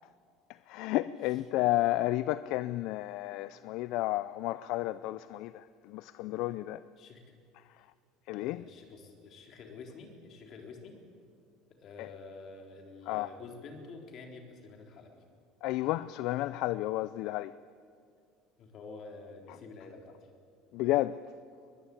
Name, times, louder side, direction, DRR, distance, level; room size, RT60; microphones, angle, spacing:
voice 1, 0.5-6.8 7.6-7.9 8.3-8.7 12.0-12.1 13.1-13.3 15.6-17.6 19.5-19.6 20.7-21.2, left 16 dB, 65° left, 0.5 m, -32 dB
voice 2, 8.4-11.0 11.8-15.2 18.6-20.2, left 4 dB, 45° left, 4.1 m, -48 dB
22.0 x 21.0 x 8.7 m
cardioid pair, 140°, 0 cm